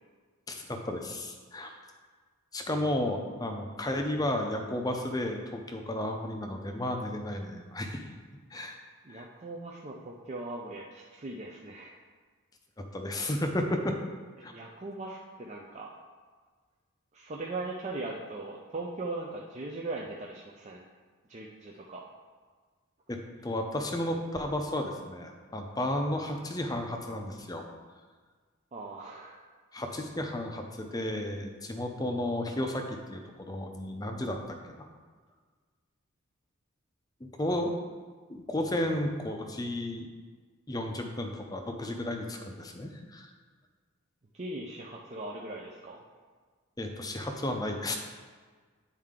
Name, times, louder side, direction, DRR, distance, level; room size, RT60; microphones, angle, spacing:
voice 1, 0.5-1.7 2.5-8.0 8.5-8.8 9.1-9.3 12.8-14.0 14.4-14.5 23.1-27.6 29.7-34.9 37.2-37.7 38.3-40.1 40.7-43.3 46.8-48.0, left 1 dB, 15° left, 4 dB, 0.6 m, -33 dB
voice 2, 9.0-12.0 14.4-15.9 17.1-20.8 21.3-22.0 28.7-29.4 44.3-46.0, right 2 dB, 30° right, -2 dB, 0.5 m, -39 dB
9.3 x 4.5 x 3.7 m, 1.5 s
head